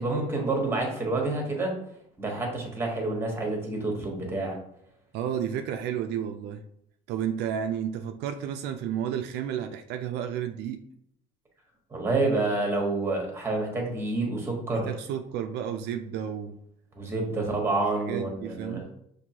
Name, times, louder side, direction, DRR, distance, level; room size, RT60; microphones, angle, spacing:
voice 1, 0.0-1.7 2.2-4.6 11.9-14.9 16.9-18.8, right 2 dB, 15° right, 1 dB, 1.0 m, -28 dB
voice 2, 5.1-6.6 7.1-10.8 14.9-16.6 17.3-18.9, right 9 dB, 75° right, 7 dB, 0.4 m, -32 dB
6.0 x 2.6 x 2.8 m, 0.73 s
cardioid pair, 150°, 17 cm